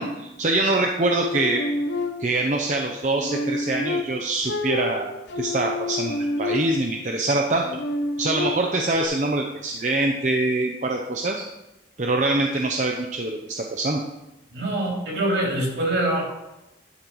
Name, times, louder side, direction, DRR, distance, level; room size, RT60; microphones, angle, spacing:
voice 1, 0.0-1.6 2.2-7.6 8.2-11.4 12.0-14.0, right 2 dB, 40° right, 1 dB, 0.6 m, -24 dB
sound 1, 1.0-2.5 3.0-7.0 7.5-9.1, left 2 dB, 70° left, 0.8 m, -29 dB
voice 2, 14.5-16.2, right 1 dB, 70° right, -2 dB, 3.0 m, -24 dB
11.0 x 4.6 x 5.3 m, 0.96 s
head